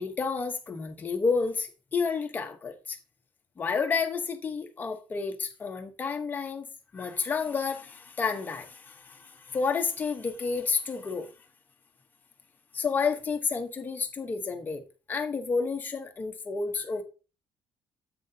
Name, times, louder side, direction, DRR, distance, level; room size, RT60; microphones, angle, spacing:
voice 1, 0.0-3.0 3.6-6.6 6.9-11.3 12.7-14.8 15.1-17.0, left 5 dB, 20° left, 0.9 m, -30 dB
9.7 x 7.7 x 2.7 m
cardioid pair, 180°, 8 cm